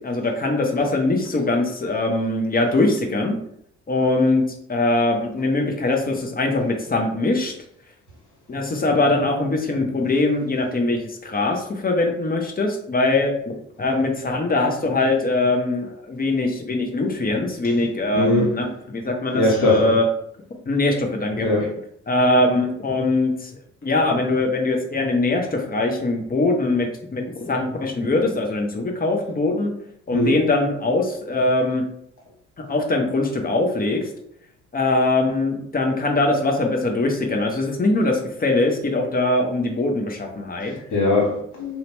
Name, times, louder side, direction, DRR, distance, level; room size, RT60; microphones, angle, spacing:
voice 1, 0.0-3.4 3.9-4.4 4.7-7.5 8.5-13.5 13.8-20.0 20.7-21.5 22.1-23.5 23.8-29.7 30.1-31.8 32.6-34.0 34.7-40.7, left 2 dB, 25° left, 0.8 m, -22 dB
voice 2, 18.1-18.6 19.3-19.9 21.4-21.7 30.1-30.4 40.7-41.8, left 1 dB, 65° left, 1.4 m, -21 dB
2.7 x 2.2 x 2.9 m
hypercardioid pair, 45°, 33 cm